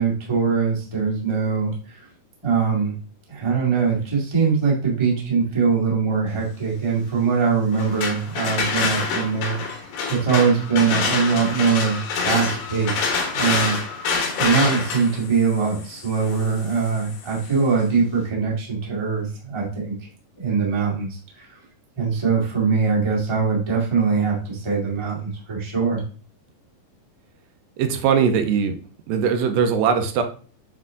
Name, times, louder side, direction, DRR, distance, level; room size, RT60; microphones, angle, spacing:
voice 1, 0.0-2.0 2.4-2.9 3.3-14.1 14.4-19.9 20.4-21.6 22.0-26.0, right 5 dB, 15° right, -4 dB, 1.0 m, -22 dB
sound 1, 7.7-17.6, left 4 dB, 85° left, 3.0 m, -27 dB
voice 2, 27.8-28.8 29.1-30.2, right 7 dB, 90° right, 7 dB, 2.4 m, -20 dB
8.1 x 3.7 x 3.6 m, 0.40 s
omnidirectional pair, 3.9 m